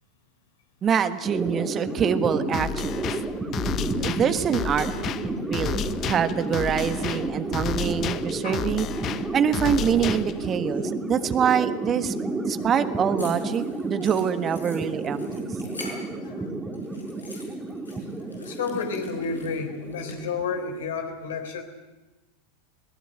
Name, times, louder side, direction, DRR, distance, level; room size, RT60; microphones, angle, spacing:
voice 1, 0.8-3.1 4.0-8.9 9.3-12.1 12.4-15.5, right 8 dB, 30° right, 11 dB, 1.4 m, -25 dB
sound 1, 1.2-20.7, right 2 dB, 15° right, 2.7 m, -31 dB
sound 2, 2.5-10.5, left 10 dB, 35° left, 1.0 m, -32 dB
sound 3, 13.2-16.4 16.7-20.1, left 2 dB, 85° left, 5.9 m, -44 dB
voice 2, 18.0-21.6, left 5 dB, 65° left, 6 dB, 4.0 m, -31 dB
21.5 x 19.5 x 9.1 m, 1.1 s
figure-of-eight pair, 85°, 0 cm